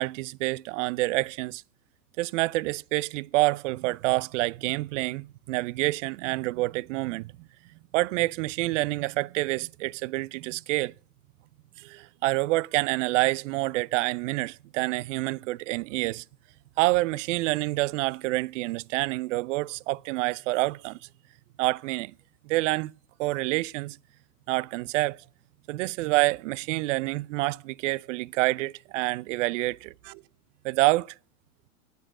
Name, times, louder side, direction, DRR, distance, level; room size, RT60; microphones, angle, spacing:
voice 1, 0.0-1.6 2.2-7.5 7.9-10.9 11.8-16.2 16.8-21.0 21.6-22.1 22.4-22.9 23.2-24.0 24.5-25.2 25.7-30.2 30.6-31.1, right 20 dB, 55° right, 0.5 m, -27 dB
9.5 x 9.2 x 7.7 m
hypercardioid pair, 100°, 45 cm